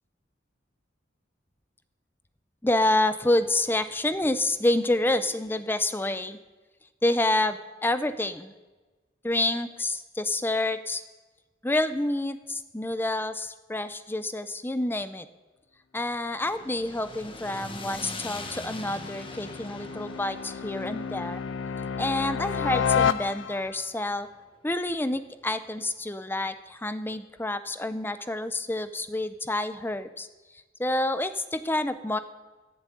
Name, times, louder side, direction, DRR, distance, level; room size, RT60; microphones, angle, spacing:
voice 1, 2.6-6.4 7.0-8.5 9.2-11.0 11.6-15.3 15.9-21.4 22.0-24.3 24.6-30.3 30.8-32.2, left 2 dB, 10° left, 12 dB, 0.6 m, -28 dB
sound 1, 16.2-24.5, left 2 dB, 30° left, 1.3 m, -43 dB
sound 2, 17.4-23.9, left 7 dB, 75° left, 0.4 m, -31 dB
14.5 x 7.3 x 8.4 m, 1.2 s
head